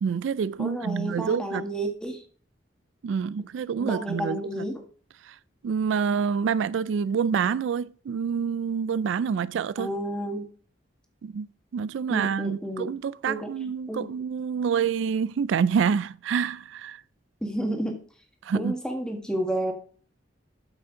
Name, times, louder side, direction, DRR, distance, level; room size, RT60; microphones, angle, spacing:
voice 1, 0.0-1.6 3.0-4.7 5.2-5.4 5.6-9.9 11.2-11.5 11.7-17.0 18.4-18.7, right 6 dB, 75° right, 0.3 m, -27 dB
voice 2, 0.6-2.2 3.8-4.8 9.8-10.5 12.1-12.9 13.2-13.5 13.9-14.1 17.4-18.0 18.5-19.7, right 1 dB, 5° left, 1.6 m, -31 dB
8.5 x 7.1 x 3.8 m
head